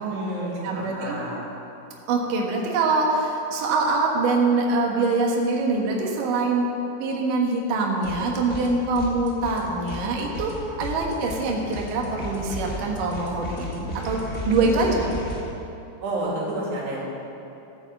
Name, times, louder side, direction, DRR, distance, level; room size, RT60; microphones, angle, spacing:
voice 1, 0.0-1.5 16.0-17.0, right 1 dB, 90° right, -4 dB, 4.7 m, -30 dB
voice 2, 0.6-1.2 2.1-6.7 7.0-10.5 10.8-15.1, right 3 dB, 65° right, -1 dB, 2.7 m, -24 dB
sound 1, 8.0-8.7 8.9-15.4, left 1 dB, 35° left, 1.5 m, -35 dB
14.0 x 7.8 x 7.8 m, 2.9 s
omnidirectional pair, 4.6 m